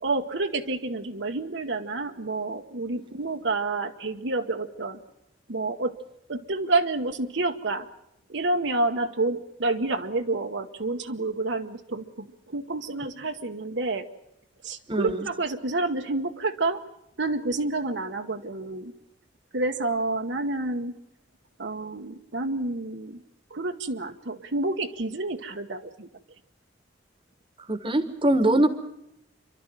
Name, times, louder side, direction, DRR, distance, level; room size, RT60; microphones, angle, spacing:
voice 1, 0.0-5.0 5.5-6.0 6.3-7.9 8.3-14.1 14.6-16.8 17.2-18.9 19.5-21.0 21.6-23.2 23.5-26.1, right 2 dB, 65° right, 5 dB, 1.1 m, -29 dB
voice 2, 14.9-15.3 27.7-28.7, right 1 dB, 25° right, 11 dB, 1.3 m, -22 dB
28.0 x 12.0 x 8.9 m, 0.82 s
head